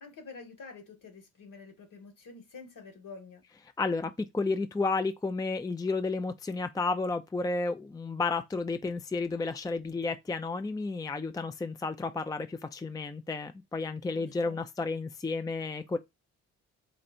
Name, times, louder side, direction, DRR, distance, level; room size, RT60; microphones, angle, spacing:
voice 1, 0.0-3.4 14.1-14.6, left 4 dB, 55° left, 1.8 m, -48 dB
voice 2, 3.8-16.0, left 3 dB, 10° left, 0.5 m, -32 dB
4.4 x 2.5 x 4.2 m
hypercardioid pair, 45°, 39 cm